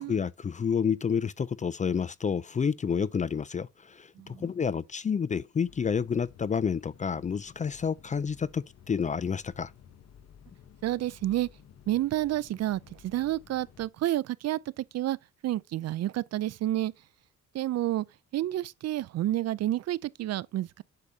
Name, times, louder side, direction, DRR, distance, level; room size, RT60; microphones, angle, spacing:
voice 1, 0.0-9.7, left 6 dB, 25° left, 0.4 m, -29 dB
sound 1, 5.7-13.9, left 8 dB, 55° left, 1.2 m, -54 dB
voice 2, 10.8-11.5 11.9-15.2 15.4-16.9 17.5-18.0 18.3-20.8, right 14 dB, 55° right, 0.5 m, -30 dB
8.3 x 6.6 x 2.8 m
cardioid pair, 90°, 30 cm